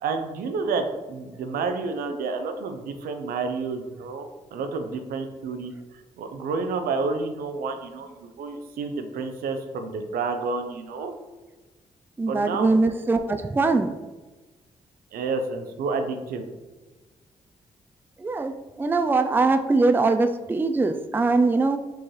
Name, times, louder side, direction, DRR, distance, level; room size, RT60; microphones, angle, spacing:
voice 1, 0.0-5.7 6.2-11.1 12.3-12.8 15.1-16.5, right 4 dB, 75° right, 6 dB, 0.5 m, -30 dB
voice 2, 12.2-14.0 18.2-21.8, right 3 dB, 15° right, 8 dB, 0.3 m, -22 dB
4.4 x 2.8 x 3.2 m, 1.2 s
supercardioid pair, 45°, 15 cm